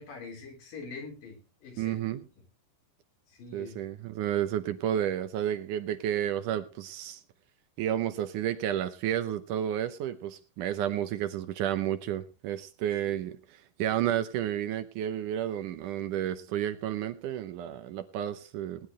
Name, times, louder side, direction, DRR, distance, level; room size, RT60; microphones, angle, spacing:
voice 1, 0.0-2.0 3.3-3.8 13.1-13.2, left 4 dB, 70° left, 2 dB, 5.7 m, -44 dB
voice 2, 1.8-2.2 3.5-7.2 7.8-18.9, right 11 dB, 75° right, 11 dB, 2.2 m, -31 dB
19.5 x 11.0 x 3.2 m, 0.32 s
omnidirectional pair, 4.0 m